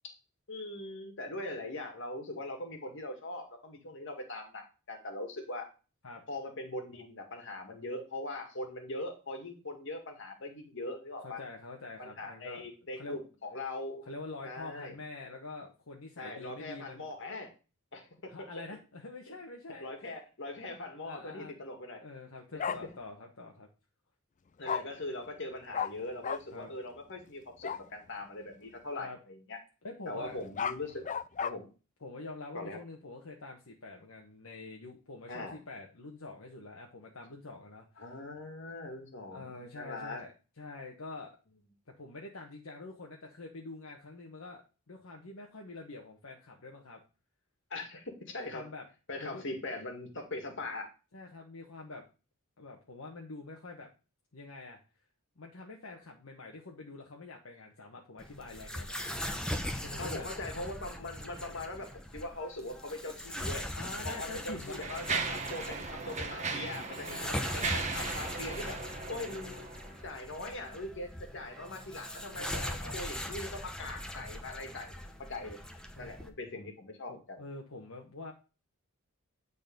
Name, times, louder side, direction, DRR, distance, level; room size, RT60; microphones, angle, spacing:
voice 1, 0.5-5.7 6.3-11.4 12.0-14.0 14.4-15.0 16.2-17.5 17.9-18.5 19.8-22.0 24.6-29.6 30.1-31.1 31.4-31.7 32.5-32.8 35.3-35.6 38.0-40.2 47.7-48.7 49.1-50.9 60.0-63.7 64.0-68.8 69.1-69.7 70.0-75.6 76.0-77.4, left 2 dB, 60° left, 4 dB, 1.9 m, -41 dB
voice 2, 11.2-12.7 13.0-13.2 14.0-17.1 18.3-19.9 20.6-20.7 21.0-21.5 21.9-23.7 26.5-26.7 29.0-29.2 29.8-30.4 32.0-38.0 39.3-40.3 40.6-41.3 42.0-44.6 44.9-47.0 48.5-48.8 49.2-49.4 51.1-52.0 52.6-53.9 54.3-54.8 55.4-59.0 59.8-60.3 63.8-64.9 67.1-67.4 72.2-72.9 76.0-76.7 77.1-78.3, left 3 dB, 75° left, 0 dB, 1.1 m, -46 dB
Bark, 22.6-22.8 24.7-24.8 25.7-25.9 26.2-26.4 27.6-27.8 30.3-31.5, left 7 dB, 35° left, 0.4 m, -33 dB
sound 1, 58.2-76.3, left 1 dB, 5° left, 0.8 m, -40 dB
Mechanisms, 63.4-63.6 64.3-70.1, right 4 dB, 35° right, 1.0 m, -37 dB
9.1 x 4.1 x 5.2 m, 0.33 s
head